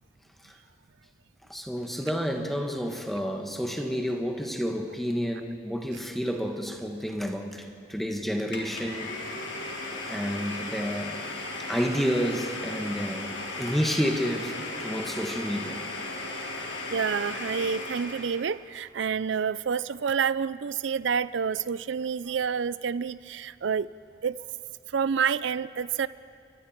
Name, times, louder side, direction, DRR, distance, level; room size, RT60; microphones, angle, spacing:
voice 1, 1.5-9.1 10.1-11.2 11.7-13.3 13.6-15.8, equal, ahead, 3 dB, 1.7 m, -30 dB
Domestic sounds home sounds, 8.5-18.5, left 2 dB, 75° left, 3.3 m, -36 dB
voice 2, 16.9-23.9 24.2-24.4 24.9-26.1, right 6 dB, 70° right, 17 dB, 0.4 m, -28 dB
29.5 x 24.0 x 4.5 m, 2.4 s
head